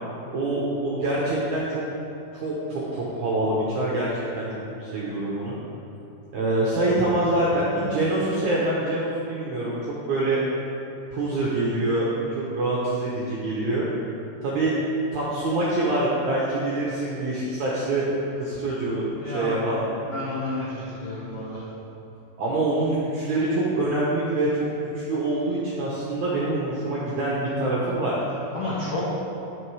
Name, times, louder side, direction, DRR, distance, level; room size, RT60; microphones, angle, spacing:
voice 1, 0.3-1.8 2.3-4.5 4.8-5.6 6.3-10.4 11.1-13.9 14.4-14.8 15.1-18.1 18.4-19.8 22.4-24.5 25.0-28.2, right 2 dB, 75° right, -6 dB, 1.7 m, -25 dB
voice 2, 19.2-19.6 20.0-21.6 28.5-29.1, left 2 dB, 90° left, -7 dB, 1.3 m, -30 dB
9.4 x 6.4 x 4.7 m, 2.9 s
omnidirectional pair, 4.8 m